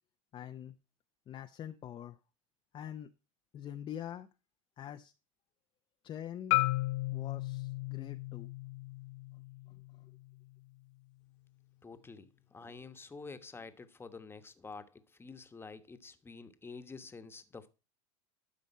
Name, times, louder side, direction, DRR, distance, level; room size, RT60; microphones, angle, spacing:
voice 1, 0.3-0.7 1.3-2.2 2.7-3.1 3.5-4.3 4.8-5.1 6.0-6.6 7.1-8.5, left 10 dB, 30° left, 0.6 m, -44 dB
Marimba xylophone, 6.5-10.7, left 21 dB, 65° left, 0.7 m, -35 dB
voice 2, 11.8-17.7, left 4 dB, 15° left, 1.2 m, -49 dB
12.5 x 5.2 x 4.3 m
hypercardioid pair, 105°, 17 cm